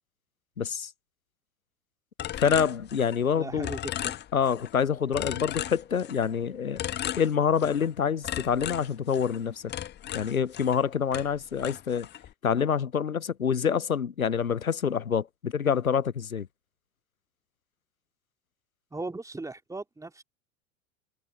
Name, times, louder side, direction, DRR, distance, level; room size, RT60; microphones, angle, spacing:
voice 1, 0.6-0.9 2.3-3.7 4.3-6.8 7.2-9.7 10.1-12.1 12.4-16.5, left 7 dB, 90° left, 0.6 m, -26 dB
sound 1, 2.2-3.3 3.6-4.7 5.1-6.3 6.8-7.9 8.2-10.8 11.1-12.3, left 11 dB, 25° left, 1.2 m, -36 dB
voice 2, 3.3-4.2 18.9-20.2, right 2 dB, 10° right, 2.8 m, -38 dB
figure-of-eight pair, 85°, 40 cm